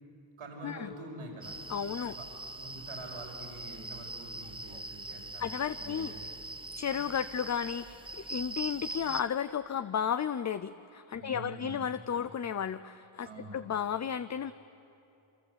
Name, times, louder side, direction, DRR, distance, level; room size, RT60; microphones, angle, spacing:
voice 1, 0.4-1.6 2.1-6.4 11.2-11.8 13.2-13.6, right 2 dB, 85° right, 0 dB, 5.6 m, -46 dB
sound 1, 1.4-9.2, right 2 dB, 10° right, 0.9 m, -42 dB
voice 2, 1.7-2.1 5.4-6.1 6.8-14.5, left 8 dB, 35° left, 12 dB, 0.5 m, -33 dB
28.5 x 26.0 x 8.1 m, 2.8 s
wide cardioid pair, 120°, 49 cm